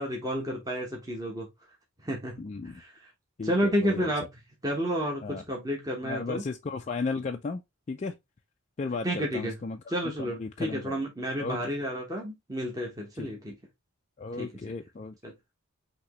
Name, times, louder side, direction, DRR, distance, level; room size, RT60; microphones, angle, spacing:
voice 1, 0.0-1.5 2.0-2.4 2.7-2.9 3.4-4.3 4.6-6.4 9.0-9.5 9.9-13.5 14.4-14.5 15.2-15.3, equal, 15° right, 1.0 m, -31 dB
voice 2, 2.4-2.8 3.4-4.1 5.2-5.4 6.0-7.6 7.9-8.2 8.8-11.0 11.4-11.7 13.2-13.3 14.2-15.2, left 4 dB, 35° left, 0.3 m, -35 dB
5.9 x 2.9 x 2.9 m
head